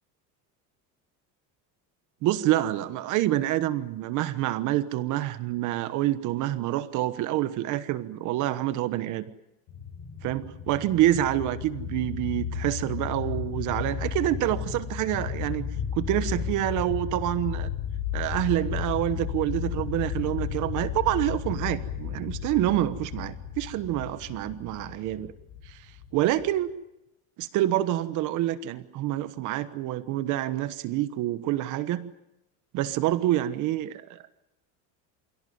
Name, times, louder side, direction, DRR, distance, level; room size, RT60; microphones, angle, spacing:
voice 1, 2.2-9.2 10.2-17.7 18.1-25.3 25.7-25.8 26.1-26.7 27.4-32.1 32.7-34.2, right 14 dB, 55° right, 13 dB, 1.2 m, -27 dB
sound 1, 9.7-26.7, left 8 dB, 55° left, 6.2 m, -34 dB
28.0 x 17.0 x 9.5 m, 0.94 s
cardioid pair, 155°, 36 cm